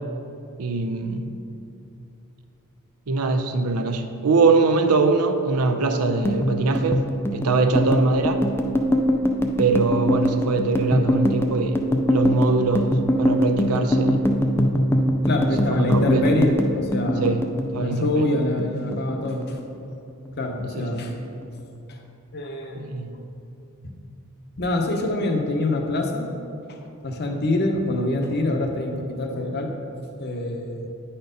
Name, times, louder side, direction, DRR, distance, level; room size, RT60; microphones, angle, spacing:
voice 1, 0.6-1.3 3.1-7.0 7.3-8.4 9.6-11.8 12.1-12.9 13.2-14.2 15.7-16.3 17.2-17.4 17.7-18.3 20.7-20.9 22.7-23.2, right 3 dB, 90° right, 7 dB, 0.6 m, -22 dB
sound 1, 6.1-18.7 18.9-20.0 20.3-20.6 20.9-21.6, equal, 10° left, 0.4 m, -22 dB
voice 2, 15.2-17.4 17.7-19.6 20.4-21.2 21.9-22.0 22.3-23.2 24.6-26.3 26.7-26.8 27.0-29.7 30.2-30.9, left 2 dB, 45° left, 3 dB, 0.8 m, -25 dB
9.3 x 4.4 x 5.1 m, 2.6 s
head